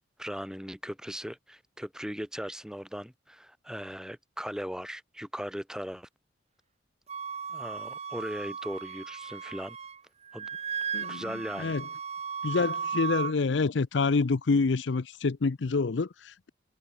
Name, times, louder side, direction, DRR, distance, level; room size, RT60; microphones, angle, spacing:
voice 1, 0.2-6.1 7.5-9.8 10.3-10.5 11.1-11.7, equal, 5° right, 4.6 m, -38 dB
Wind instrument woodwind instrument, 7.1-10.0 10.3-13.3, right 6 dB, 35° right, 1.4 m, -36 dB
voice 2, 12.4-16.5, left 4 dB, 70° left, 0.6 m, -27 dB
head